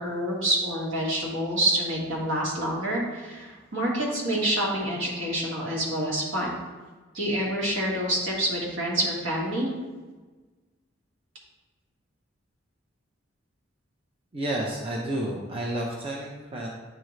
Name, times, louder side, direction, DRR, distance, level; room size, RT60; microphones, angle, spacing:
voice 1, 0.0-6.5 7.1-9.7, right 1 dB, 70° right, -4 dB, 1.7 m, -27 dB
voice 2, 14.3-16.7, right 1 dB, 30° right, -2 dB, 0.6 m, -30 dB
8.9 x 3.8 x 3.1 m, 1.3 s
head